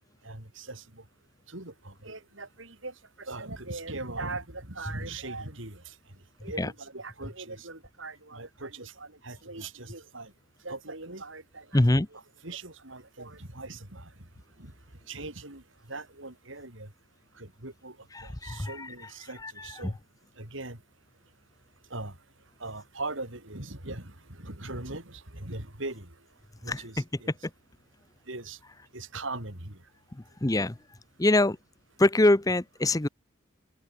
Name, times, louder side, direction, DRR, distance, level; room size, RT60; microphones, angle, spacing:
voice 1, 0.2-0.8 1.5-5.9 6.4-10.3 10.6-11.8 12.1-14.1 14.6-14.7 15.1-15.6 15.9-16.9 17.4-17.9 18.2-19.9 20.4-20.8 21.9-22.1 22.6-26.1 26.6-27.3 28.3-28.6 28.9-29.8, right 2 dB, 70° right, 5.1 m, -40 dB
voice 2, 11.7-12.1 18.2-18.9 19.4-19.5 19.8-19.9 26.7-26.8 30.4-30.7 31.2-31.6 32.0-33.1, left 2 dB, 15° left, 0.7 m, -23 dB
head